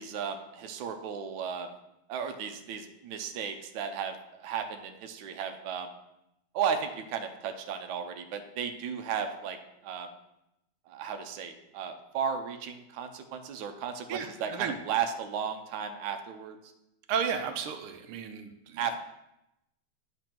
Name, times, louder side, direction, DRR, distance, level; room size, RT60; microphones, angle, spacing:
voice 1, 0.0-1.7 2.1-5.9 6.5-9.6 9.8-10.1 10.9-16.6 18.8-19.0, right 7 dB, 70° right, 6 dB, 1.4 m, -34 dB
voice 2, 14.1-14.8 17.1-18.8, right 7 dB, 85° right, 6 dB, 1.6 m, -33 dB
9.9 x 3.4 x 5.9 m, 0.87 s
omnidirectional pair, 2.4 m